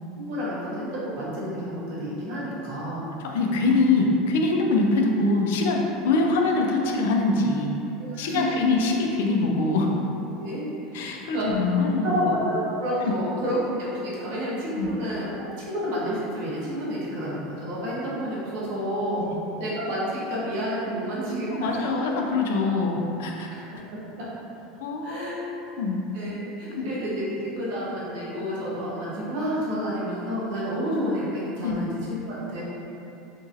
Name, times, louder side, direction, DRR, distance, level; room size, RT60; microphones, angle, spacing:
voice 1, 0.2-3.1 8.1-8.6 10.4-11.5 12.0-15.3 15.7-19.3 19.6-21.8 24.2-24.3 25.0-25.4 26.1-32.6, equal, 65° right, -8 dB, 0.9 m, -30 dB
voice 2, 3.2-7.8 8.2-9.9 10.9-12.2 14.8-14.9 19.2-19.3 21.5-23.5 24.8-26.0 26.7-26.9 31.6-31.8, left 3 dB, 85° left, 1 dB, 0.3 m, -24 dB
2.9 x 2.6 x 2.5 m, 2.9 s
supercardioid pair, 145°, 0 cm